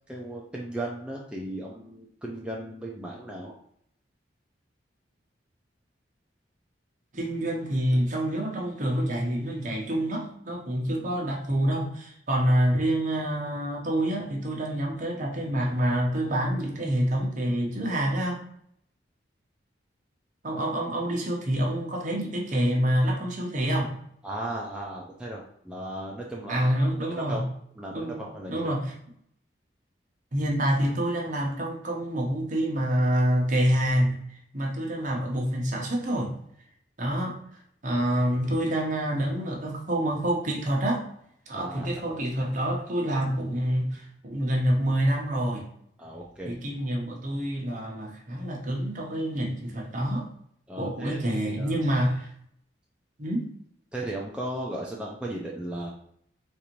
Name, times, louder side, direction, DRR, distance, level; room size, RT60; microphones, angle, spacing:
voice 1, 0.1-3.5 24.2-27.5 27.8-28.8 41.5-42.2 46.0-46.7 50.7-51.7 53.9-55.9, right 1 dB, 5° right, -3 dB, 0.4 m, -36 dB
voice 2, 7.1-18.4 20.4-24.0 26.5-27.4 27.9-28.2 28.5-28.9 30.3-34.2 34.5-36.4 37.0-37.4 37.8-41.1 41.5-45.6 46.5-50.3 50.8-52.3 53.2-53.4, right 1 dB, 45° right, -1 dB, 0.8 m, -27 dB
4.1 x 2.5 x 2.9 m, 0.68 s
head